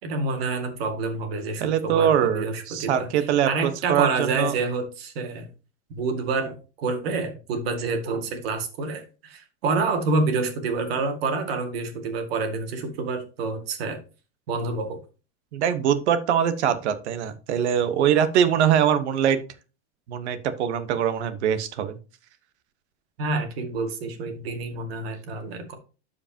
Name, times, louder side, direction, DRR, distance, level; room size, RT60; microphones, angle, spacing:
voice 1, 0.0-3.1 3.5-5.5 5.9-14.0 14.5-15.0 23.2-25.7, right 3 dB, 60° right, 5 dB, 2.1 m, -28 dB
voice 2, 1.6-4.5 15.5-19.4 20.1-22.0, right 9 dB, 75° right, 11 dB, 1.2 m, -23 dB
12.5 x 5.0 x 2.9 m, 0.33 s
supercardioid pair, 175°, 34 cm